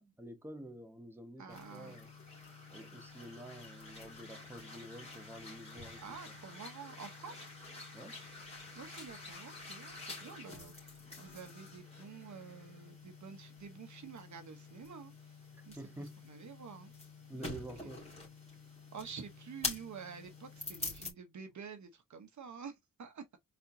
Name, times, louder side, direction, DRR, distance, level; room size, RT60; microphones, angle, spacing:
voice 1, 0.0-2.1 2.7-6.3 7.9-8.2 15.5-16.2 17.3-18.1, right 1 dB, 5° right, 1.1 m, -49 dB
voice 2, 1.4-2.0 6.0-7.5 8.7-16.9 17.3-17.7 18.9-23.4, right 6 dB, 60° right, 1.0 m, -49 dB
sound 1, 1.5-21.1, left 3 dB, 20° left, 2.6 m, -47 dB
4.3 x 4.2 x 2.7 m
wide cardioid pair, 115°, 33 cm